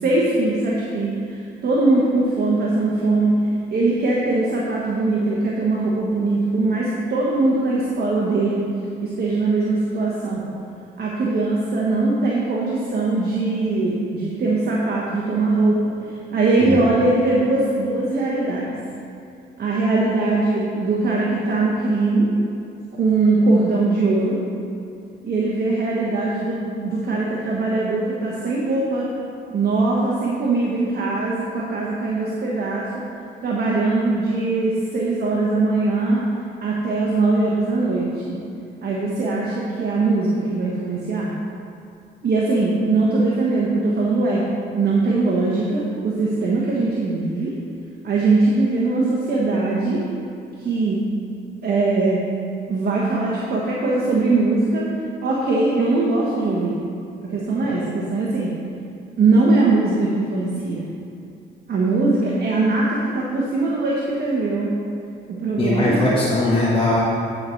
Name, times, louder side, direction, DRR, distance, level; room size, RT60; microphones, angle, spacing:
voice 1, 0.0-8.6 9.0-10.5 11.0-18.7 19.6-22.3 22.9-24.4 25.2-29.1 29.5-32.9 33.4-36.2 36.6-38.4 38.8-41.3 42.2-44.4 44.7-47.5 48.0-50.0 50.6-51.0 51.6-52.2 52.7-54.9 55.2-56.8 57.2-58.5 59.2-60.9 61.7-64.7 65.3-66.1, right 3 dB, 55° right, -4 dB, 1.3 m, -21 dB
voice 2, 65.6-67.0, left 2 dB, 25° left, -9 dB, 1.7 m, -19 dB
9.7 x 4.6 x 5.7 m, 2.5 s
cardioid pair, 90°, 20 cm